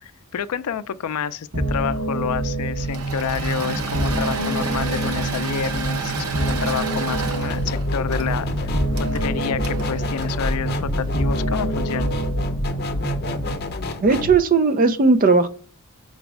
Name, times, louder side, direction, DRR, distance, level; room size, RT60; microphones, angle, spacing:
voice 1, 0.0-8.7 9.0-12.1, left 8 dB, 80° left, 0.4 m, -29 dB
sound 1, 1.5-13.5, right 2 dB, 60° right, 1.6 m, -27 dB
Engine / Mechanisms, 2.8-11.2, right 3 dB, 85° right, 0.9 m, -31 dB
sound 2, 7.5-14.4, left 2 dB, 45° left, 0.7 m, -28 dB
voice 2, 14.0-15.5, right 4 dB, 40° right, 0.5 m, -16 dB
5.1 x 4.0 x 4.7 m
head